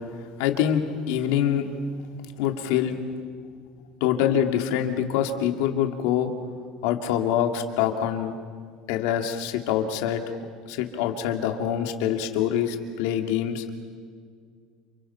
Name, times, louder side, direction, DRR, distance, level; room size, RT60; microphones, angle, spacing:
voice 1, 0.4-1.7 2.4-2.9 4.0-6.3 6.8-8.3 8.9-10.4 10.7-13.6, left 9 dB, 75° left, 5 dB, 2.5 m, -25 dB
29.5 x 28.5 x 5.8 m, 2.1 s
cardioid pair, 165°, 0 cm